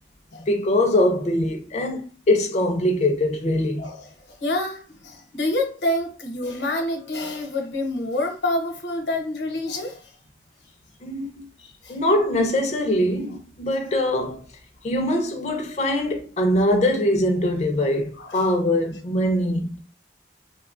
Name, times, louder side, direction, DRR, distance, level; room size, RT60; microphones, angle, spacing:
voice 1, 0.4-3.9 11.0-11.5 11.9-14.4 14.8-19.8, left 1 dB, 40° left, 0.4 m, -22 dB
voice 2, 3.8-10.1 11.6-12.0 18.2-18.5, left 1 dB, 85° left, 0.8 m, -28 dB
3.0 x 2.1 x 2.4 m
head